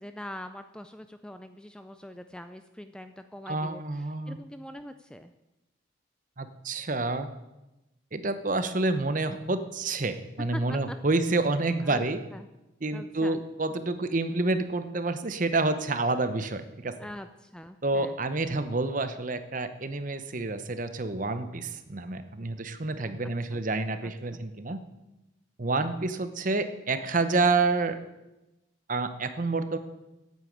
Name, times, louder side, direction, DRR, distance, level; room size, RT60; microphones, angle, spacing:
voice 1, 0.0-5.3 10.5-11.2 11.8-12.0 12.3-12.5 12.9-13.4 16.9-18.2 23.2-23.6 24.0-24.4 25.8-26.0, left 1 dB, 5° left, 9 dB, 0.4 m, -43 dB
voice 2, 3.5-4.4 6.4-7.3 8.1-12.2 12.8-16.9 17.8-24.8 25.6-28.0 28.9-29.8, right 3 dB, 40° right, 10 dB, 0.8 m, -28 dB
9.3 x 9.0 x 8.0 m, 0.99 s
head